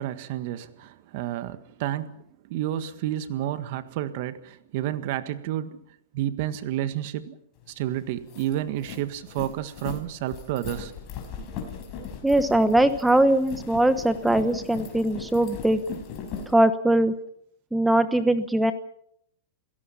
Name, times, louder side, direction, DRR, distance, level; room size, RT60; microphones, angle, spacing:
voice 1, 0.0-5.8 6.1-7.4 7.7-10.9 11.4-11.5, right 12 dB, 55° right, 1.7 m, -30 dB
sound 1, 7.7-7.8 8.1-16.5, left 6 dB, 40° left, 5.6 m, -38 dB
voice 2, 12.2-15.8 16.5-17.1 17.7-18.7, right 1 dB, 5° right, 1.1 m, -21 dB
28.0 x 17.0 x 5.8 m
hypercardioid pair, 140°, 0 cm